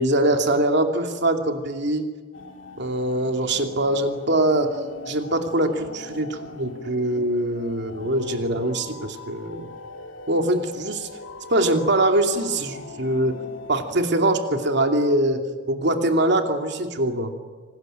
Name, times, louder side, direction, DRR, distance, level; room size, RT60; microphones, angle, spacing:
voice 1, 0.0-2.1 2.8-4.8 5.1-9.7 10.3-11.1 11.5-13.4 13.7-17.3, right 1 dB, 60° right, 5 dB, 2.7 m, -23 dB
sound 1, 2.3-13.9, left 3 dB, 75° left, 2.4 m, -41 dB
26.5 x 19.5 x 9.1 m, 1.4 s
head